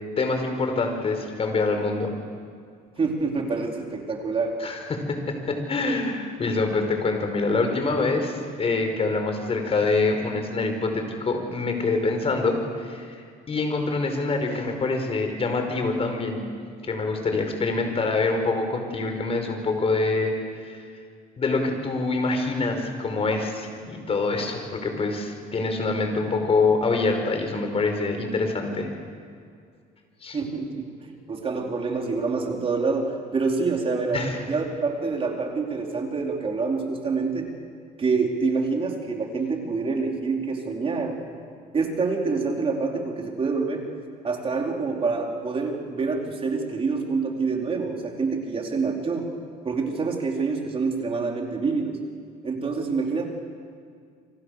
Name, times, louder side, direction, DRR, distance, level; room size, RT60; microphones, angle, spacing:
voice 1, 0.2-2.1 4.6-13.2 13.5-16.4 16.8-20.3 20.6-20.8 21.4-28.9 30.2-30.4 34.1-34.4, left 3 dB, 35° left, 5 dB, 5.1 m, -25 dB
voice 2, 3.0-4.6 30.3-37.5 38.0-41.2 41.7-43.9 44.2-49.3 49.6-52.0 52.4-53.3, right 4 dB, 35° right, 1 dB, 4.5 m, -26 dB
28.5 x 25.0 x 6.7 m, 2.2 s
cardioid pair, 110°, 17 cm